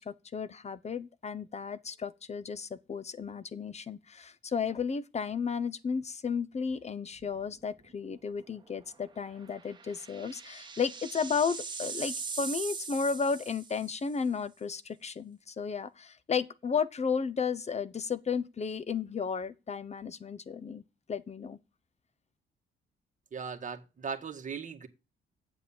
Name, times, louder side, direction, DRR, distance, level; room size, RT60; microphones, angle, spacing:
voice 1, 0.0-20.8 21.1-21.6, left 6 dB, 35° left, 0.9 m, -33 dB
sound 1, 7.2-7.5 7.9-8.0 9.4-14.1, right 5 dB, 20° right, 1.9 m, -40 dB
voice 2, 23.3-24.9, right 6 dB, 40° right, 1.8 m, -38 dB
8.6 x 7.6 x 7.1 m
cardioid pair, 90°, 20 cm